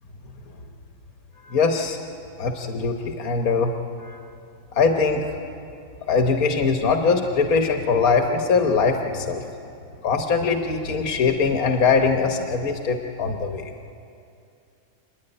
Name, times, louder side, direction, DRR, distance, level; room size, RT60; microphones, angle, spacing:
voice 1, 1.4-2.0 2.4-3.7 4.0-4.2 4.7-5.4 6.1-9.4 10.0-13.7, left 4 dB, 90° left, 4 dB, 1.6 m, -22 dB
28.5 x 10.0 x 9.9 m, 2.6 s
omnidirectional pair, 1.5 m